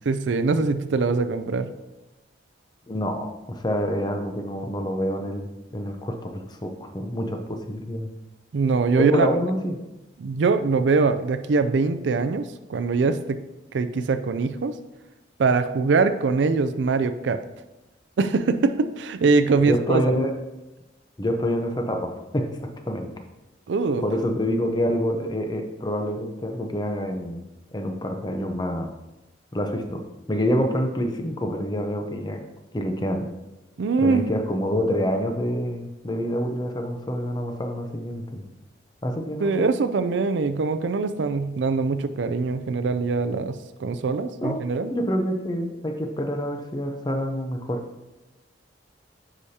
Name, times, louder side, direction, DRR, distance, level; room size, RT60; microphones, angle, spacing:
voice 1, 0.1-1.7 8.5-9.3 10.2-12.4 12.7-13.4 13.7-14.7 15.4-17.4 18.2-20.2 23.7-24.0 33.8-34.3 39.4-44.9, right 4 dB, 75° right, 10 dB, 0.4 m, -23 dB
voice 2, 2.9-8.1 9.0-9.8 19.6-20.3 21.2-23.1 24.0-27.4 27.7-28.9 29.5-32.4 32.7-33.3 34.0-38.4 39.0-39.7 44.4-44.6 44.9-47.8, equal, 25° left, 5 dB, 0.7 m, -27 dB
9.9 x 4.9 x 2.8 m, 1.0 s
head